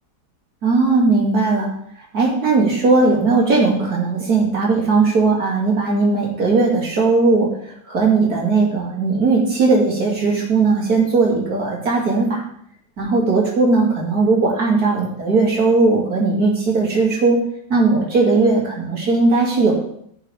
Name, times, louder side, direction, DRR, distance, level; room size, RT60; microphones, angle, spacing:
voice 1, 0.6-1.7 2.1-7.5 7.8-12.4 13.0-17.4 17.7-19.8, right 3 dB, 65° right, -2 dB, 3.1 m, -17 dB
15.0 x 6.6 x 3.5 m, 0.68 s
omnidirectional pair, 1.7 m